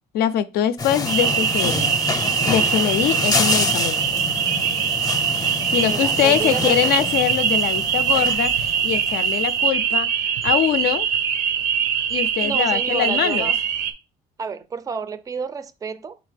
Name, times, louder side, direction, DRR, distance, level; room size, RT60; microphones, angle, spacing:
voice 1, 0.1-1.8 2.4-4.1 5.7-10.1 10.4-11.1 12.1-13.5, left 10 dB, 70° left, 0.4 m, -23 dB
sound 1, 0.8-9.6, left 3 dB, 25° left, 0.6 m, -27 dB
sound 2, 1.1-13.9, right 8 dB, 75° right, 0.5 m, -22 dB
voice 2, 5.8-7.1 12.4-13.6 14.4-16.2, right 5 dB, 20° right, 0.3 m, -30 dB
3.8 x 3.3 x 3.3 m
cardioid pair, 110°, 17 cm